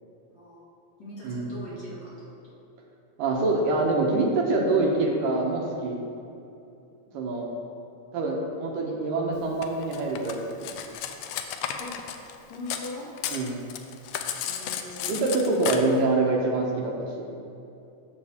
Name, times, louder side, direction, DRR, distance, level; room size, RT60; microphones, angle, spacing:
voice 1, 0.3-0.6 1.0-2.1 2.4-2.6 7.1-7.3 11.8-11.9 12.5-13.1 14.4-15.2, left 1 dB, 35° left, -9 dB, 2.5 m, -41 dB
voice 2, 3.2-6.0 7.1-7.5 8.1-10.4 13.3-13.6 15.1-17.4, right 2 dB, 75° right, -1 dB, 2.5 m, -25 dB
Cutlery silverware, 9.6-12.9 13.2-15.8, left 9 dB, 85° left, 1.8 m, -33 dB
13.0 x 6.9 x 3.5 m, 2.7 s
omnidirectional pair, 4.0 m